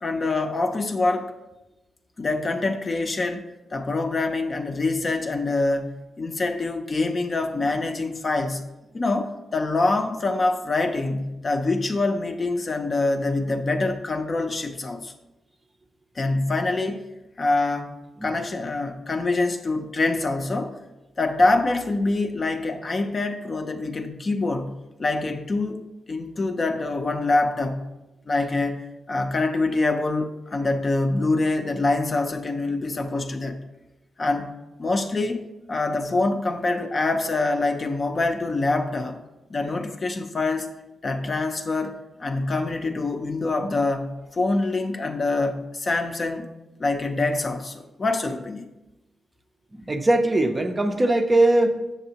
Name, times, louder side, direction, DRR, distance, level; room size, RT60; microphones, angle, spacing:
voice 1, 0.0-1.3 2.2-8.7 8.9-15.1 16.2-17.0 17.4-17.9 18.2-20.7 21.2-25.8 26.1-27.9 28.3-28.8 29.1-33.6 34.2-35.4 35.7-39.2 39.5-40.7 41.0-46.5 46.8-48.7, left 2 dB, 35° left, 5 dB, 0.5 m, -25 dB
voice 2, 49.9-51.9, right 2 dB, 20° right, 5 dB, 0.5 m, -20 dB
7.3 x 6.8 x 2.8 m, 0.98 s
wide cardioid pair, 125°, 0 cm